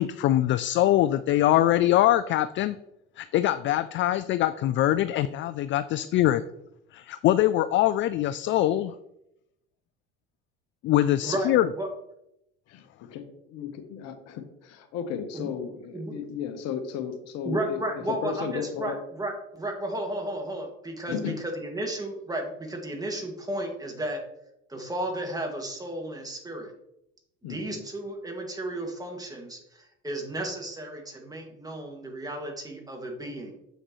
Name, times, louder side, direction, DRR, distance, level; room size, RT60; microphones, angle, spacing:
voice 1, 0.0-2.8 3.2-6.4 6.9-8.9 10.8-11.7, left 13 dB, 40° left, 14 dB, 0.4 m, -23 dB
voice 2, 11.2-11.9 15.3-15.5 15.9-16.1 17.4-24.2 24.7-26.7 27.5-33.6, right 1 dB, 10° right, 1 dB, 2.1 m, -33 dB
voice 3, 13.1-17.8 18.2-19.0 21.1-21.4 27.4-27.8, left 7 dB, 60° left, 8 dB, 1.2 m, -34 dB
7.5 x 6.4 x 3.1 m, 0.81 s
hypercardioid pair, 80°, 29 cm